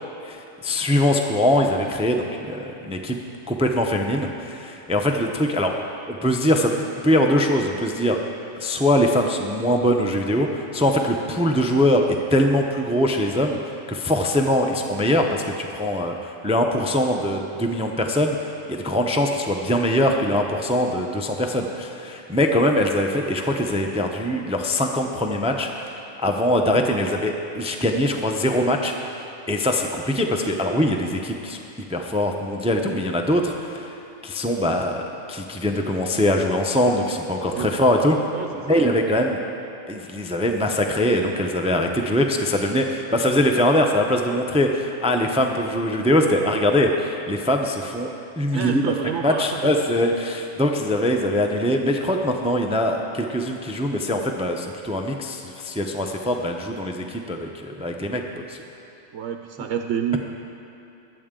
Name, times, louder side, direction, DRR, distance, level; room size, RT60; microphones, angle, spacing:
voice 1, 0.3-3.2 3.5-5.7 6.1-8.2 8.5-13.6 13.9-31.6 31.9-38.2 38.7-39.4 39.9-48.9 49.2-58.6, left 1 dB, 10° right, 3 dB, 0.3 m, -22 dB
voice 2, 26.6-26.9 37.5-37.8 38.3-39.0 48.5-49.7 59.1-60.2, right 8 dB, 70° right, 5 dB, 0.9 m, -29 dB
21.0 x 8.4 x 3.7 m, 2.9 s
omnidirectional pair, 1.3 m